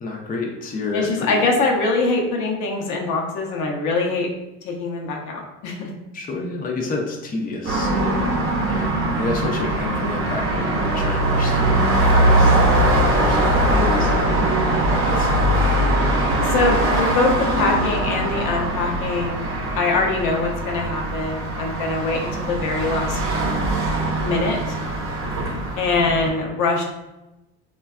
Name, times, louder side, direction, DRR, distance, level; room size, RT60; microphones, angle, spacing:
voice 1, 0.0-1.5 6.1-12.8 13.1-14.6 14.9-15.7, left 3 dB, 25° left, 0 dB, 0.5 m, -30 dB
voice 2, 0.9-4.3 4.6-5.9 16.4-19.5 19.7-23.2 24.2-24.8 25.8-26.8, left 3 dB, 65° left, 0 dB, 0.7 m, -23 dB
sound 1, 7.6-26.3, right 1 dB, 40° right, 0.7 m, -21 dB
Wind instrument woodwind instrument, 10.1-14.4, right 6 dB, 5° right, 0.9 m, -37 dB
3.2 x 2.2 x 2.3 m, 0.98 s
supercardioid pair, 80°, 33 cm